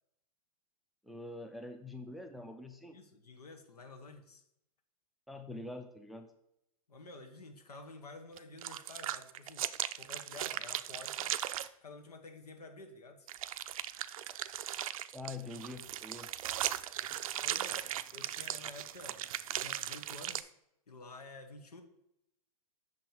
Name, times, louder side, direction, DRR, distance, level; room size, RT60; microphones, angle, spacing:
voice 1, 1.0-3.0 5.3-6.3 15.1-16.3, left 2 dB, ahead, 6 dB, 0.4 m, -45 dB
voice 2, 2.9-4.4 6.9-9.7 9.9-11.4 11.8-13.3 17.4-17.8 18.1-19.3 19.5-20.5 20.9-21.8, left 3 dB, 85° left, 5 dB, 1.3 m, -51 dB
sound 1, 8.4-11.7 13.3-20.4, right 12 dB, 65° right, 0.4 m, -38 dB
6.2 x 3.9 x 4.5 m, 0.79 s
hypercardioid pair, 120°, 19 cm